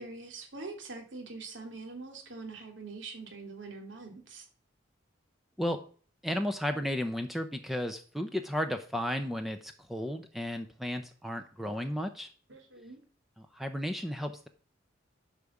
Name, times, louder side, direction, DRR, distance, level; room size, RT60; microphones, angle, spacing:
voice 1, 0.0-4.4 12.5-13.0, right 3 dB, 65° right, 2 dB, 2.6 m, -44 dB
voice 2, 6.2-12.3 13.5-14.5, equal, ahead, 6 dB, 0.7 m, -33 dB
10.5 x 5.0 x 7.1 m, 0.42 s
head